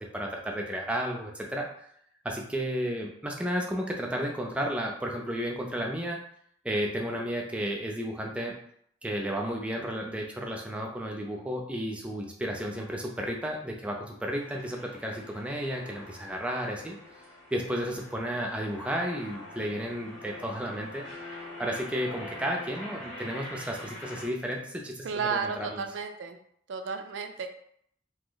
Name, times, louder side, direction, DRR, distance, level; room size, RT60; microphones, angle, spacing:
voice 1, 0.0-1.9 2.2-6.2 6.6-8.6 9.0-17.0 17.5-21.0 21.6-25.8, equal, 5° right, -1 dB, 0.4 m, -33 dB
sound 1, 14.3-24.3, left 1 dB, 30° left, 0.8 m, -44 dB
voice 2, 25.0-26.4 26.7-27.5, right 5 dB, 80° right, 7 dB, 0.4 m, -32 dB
2.7 x 2.0 x 3.8 m, 0.67 s
head